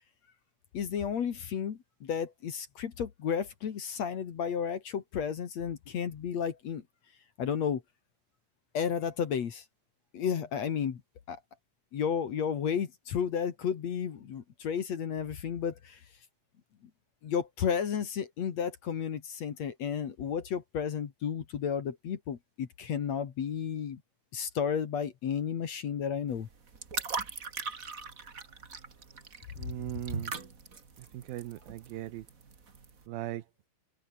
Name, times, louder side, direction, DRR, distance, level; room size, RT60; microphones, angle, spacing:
voice 1, 0.7-6.8 7.4-7.8 8.7-9.6 10.1-11.0 11.3-11.4 11.9-16.0 17.2-24.0 24.3-26.5, left 7 dB, 50° left, 2.6 m, -32 dB
sound 1, 26.3-33.0, right 5 dB, 30° right, 1.7 m, -40 dB
voice 2, 29.6-30.3 31.1-32.2 33.1-33.4, right 15 dB, 80° right, 2.8 m, -38 dB
omnidirectional pair, 4.4 m